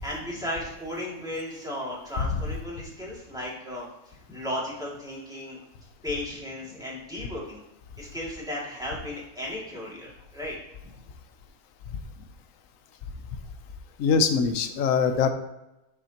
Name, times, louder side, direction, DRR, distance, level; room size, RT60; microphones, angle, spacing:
voice 1, 0.0-5.6 6.0-7.6 8.0-10.6 10.8-10.9, left 1 dB, ahead, -6 dB, 2.3 m, -35 dB
voice 2, 14.0-15.3, left 5 dB, 65° left, 8 dB, 1.1 m, -23 dB
7.9 x 6.1 x 2.9 m, 0.94 s
omnidirectional pair, 1.6 m